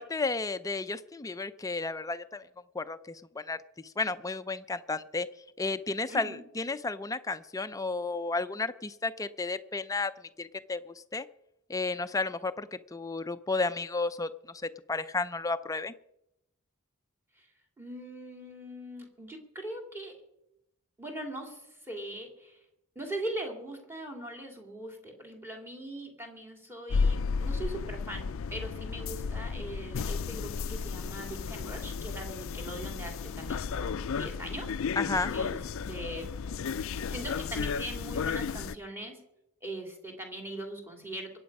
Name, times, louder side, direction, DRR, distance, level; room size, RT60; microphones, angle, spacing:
voice 1, 0.0-2.4 2.7-5.3 5.6-10.1 10.4-11.3 11.7-14.6 14.9-15.9 35.0-35.3, left 3 dB, 15° left, 11 dB, 0.5 m, -33 dB
voice 2, 6.1-6.4 17.4-17.5 17.8-20.2 21.0-22.6 22.9-35.0 35.3-35.6 35.9-36.3 37.1-39.2 39.6-41.4, right 1 dB, 10° right, 3 dB, 2.7 m, -41 dB
sound 1, 26.9-38.7, left 5 dB, 65° left, 0.4 m, -33 dB
23.5 x 8.5 x 5.4 m, 0.85 s
head